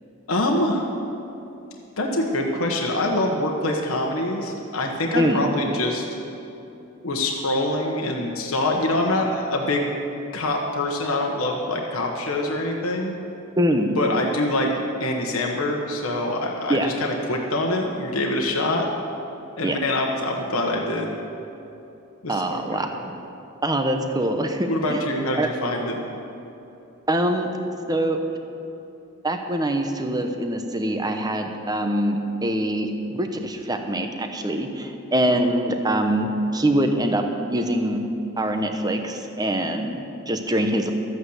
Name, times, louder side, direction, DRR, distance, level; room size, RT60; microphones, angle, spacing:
voice 1, 0.3-0.9 2.0-6.0 7.0-9.9 10.3-13.2 14.0-14.7 15.0-18.9 19.6-21.1 22.2-22.9 24.7-26.0, left 1 dB, 70° left, 0 dB, 1.3 m, -25 dB
voice 2, 5.2-5.5 13.6-14.0 16.7-16.9 19.6-19.8 22.3-22.9 23.6-25.0 25.4-25.5 27.1-27.5 27.9-28.2 29.2-37.2 37.5-38.0 38.4-40.9, right 1 dB, 20° right, 5 dB, 0.9 m, -24 dB
13.5 x 8.7 x 8.0 m, 2.8 s
head